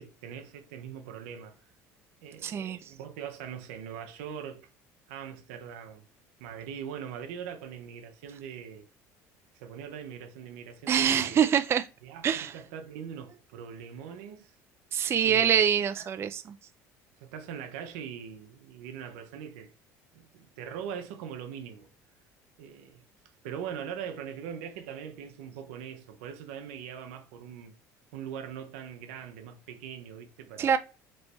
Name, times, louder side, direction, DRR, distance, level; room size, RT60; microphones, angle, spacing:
voice 1, 0.0-1.6 2.2-4.7 5.1-6.1 6.4-8.9 9.5-11.4 12.0-14.5 15.2-15.6 16.0-16.1 17.2-19.7 20.1-21.9 22.6-23.0 23.4-27.7 28.1-30.7, right 8 dB, 90° right, 0.7 m, -41 dB
voice 2, 2.4-2.8 10.9-11.9 12.2-12.5 14.9-16.6 30.6-30.8, right 8 dB, 35° right, 0.3 m, -25 dB
3.3 x 3.1 x 4.0 m
supercardioid pair, 95°, 7 cm